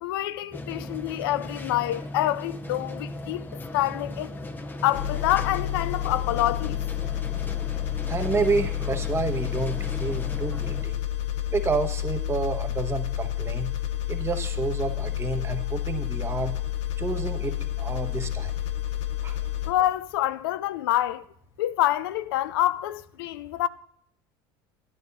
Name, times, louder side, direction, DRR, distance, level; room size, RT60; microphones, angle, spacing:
voice 1, 0.0-3.5 3.7-4.4 4.8-6.8 19.6-21.2 21.6-23.7, left 14 dB, 85° left, 0.4 m, -26 dB
sound 1, 0.5-10.8, left 2 dB, 15° left, 0.7 m, -37 dB
sound 2, 4.9-19.7, left 12 dB, 65° left, 0.9 m, -30 dB
voice 2, 8.1-11.0 11.5-13.7 14.1-16.5 17.0-18.6 19.2-19.4, right 4 dB, 20° right, 1.0 m, -29 dB
12.0 x 9.3 x 4.0 m
supercardioid pair, 105°, 12 cm